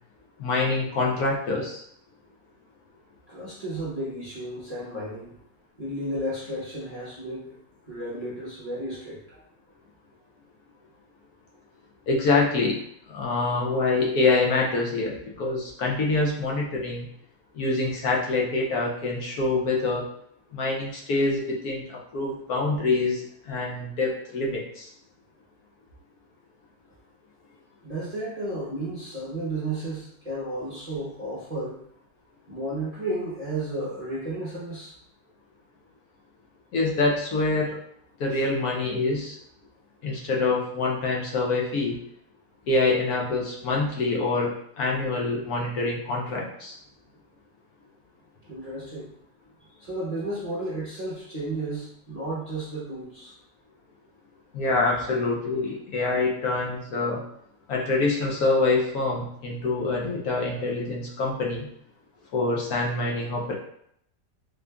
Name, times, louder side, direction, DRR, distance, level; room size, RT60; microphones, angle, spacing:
voice 1, 0.4-1.8 12.1-12.8 13.1-17.1 17.6-20.1 20.5-24.9 36.7-37.8 38.2-39.4 40.0-42.0 42.7-46.8 54.5-57.2 57.7-61.7 62.3-63.6, left 3 dB, 70° left, -2 dB, 1.1 m, -25 dB
voice 2, 3.3-5.4 5.8-7.5 7.8-9.4 27.8-31.8 32.5-34.9 38.3-38.4 40.1-40.2 48.5-49.1 49.8-53.3, right 1 dB, 30° right, -8 dB, 0.7 m, -33 dB
3.7 x 2.4 x 3.3 m, 0.71 s
omnidirectional pair, 1.8 m